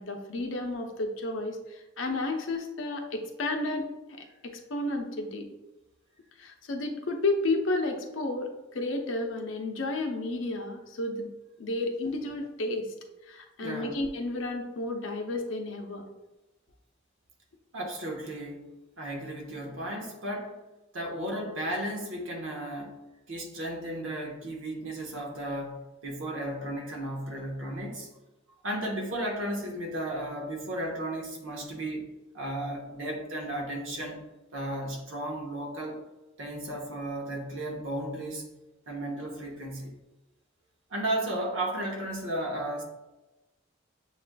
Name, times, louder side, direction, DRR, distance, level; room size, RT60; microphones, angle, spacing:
voice 1, 0.0-3.9 4.4-5.5 6.4-11.3 11.6-12.9 13.3-16.0, left 2 dB, 85° left, 4 dB, 0.6 m, -32 dB
voice 2, 13.6-14.0 17.7-18.7 19.0-20.6 20.9-23.0 23.3-28.1 28.6-32.1 32.3-34.3 34.5-36.0 36.4-38.4 38.9-40.0 40.9-42.8, right 1 dB, 90° right, 1 dB, 1.0 m, -34 dB
6.8 x 2.4 x 2.2 m, 1.0 s
head